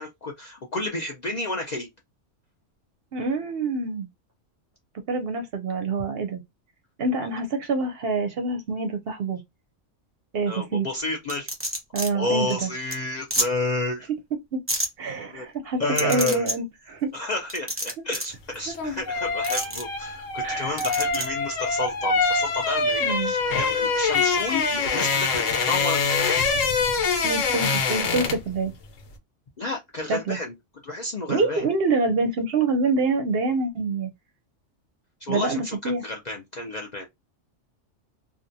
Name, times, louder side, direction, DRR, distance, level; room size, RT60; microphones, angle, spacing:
voice 1, 0.0-1.9 10.5-11.5 12.1-14.1 15.3-15.5 15.8-16.5 17.1-26.3 29.6-30.5 30.8-31.6 35.2-37.1, left 2 dB, 55° left, 0.5 m, -31 dB
voice 2, 3.1-4.1 5.1-6.4 7.0-9.4 10.3-10.9 11.9-12.7 14.5-14.6 15.0-17.1 20.4-20.8 23.0-23.3 27.2-28.7 30.1-30.4 31.3-34.1 35.3-36.0, right 3 dB, 60° right, 0.7 m, -26 dB
sound 1, 11.3-12.1 12.5-12.6 12.9-13.0 13.3-13.5 14.7-14.9 16.0-16.6 17.5-18.3 19.4-19.8 20.8-21.3, right 1 dB, 15° right, 0.5 m, -28 dB
sound 2, 18.5-28.5 28.8-29.0, left 4 dB, 85° left, 1.1 m, -24 dB
2.7 x 2.3 x 2.6 m
omnidirectional pair, 1.3 m